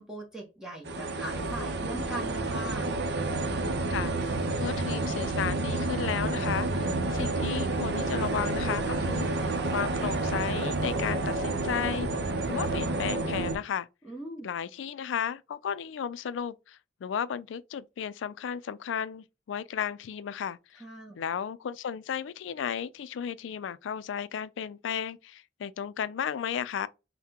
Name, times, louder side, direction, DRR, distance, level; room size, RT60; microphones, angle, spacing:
voice 1, 0.0-2.9 14.0-14.5 20.8-21.2, right 1 dB, 5° right, 0.9 m, -40 dB
sound 1, 0.9-13.6, right 2 dB, 60° right, 0.6 m, -29 dB
voice 2, 3.9-13.9 14.4-20.8 21.2-26.9, left 8 dB, 85° left, 0.3 m, -34 dB
5.7 x 2.1 x 2.8 m
head